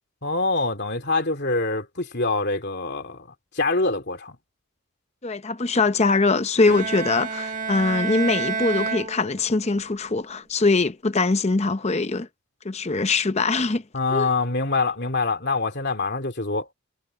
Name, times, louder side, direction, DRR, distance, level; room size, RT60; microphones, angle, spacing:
voice 1, 0.2-3.3 3.5-4.4 13.9-16.7, left 3 dB, 50° left, 2.9 m, -25 dB
voice 2, 5.2-12.3 12.6-13.8 14.1-14.3, left 3 dB, 30° left, 0.7 m, -22 dB
Bowed string instrument, 6.7-9.8, right 5 dB, 35° right, 1.7 m, -29 dB
head